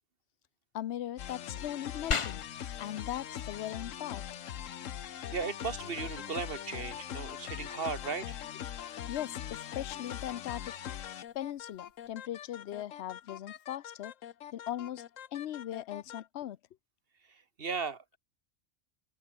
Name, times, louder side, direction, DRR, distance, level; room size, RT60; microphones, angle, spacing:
voice 1, 0.7-2.4 2.8-4.2 9.1-10.7 11.3-14.1 14.5-15.0 15.3-16.6, left 12 dB, 60° left, 0.9 m, -39 dB
sound 1, 1.2-16.2, left 10 dB, 75° left, 1.2 m, -42 dB
sound 2, 2.1-12.1, left 5 dB, 35° left, 0.5 m, -44 dB
voice 2, 5.3-8.4 17.6-18.2, right 5 dB, 45° right, 1.7 m, -36 dB
omnidirectional pair, 1.4 m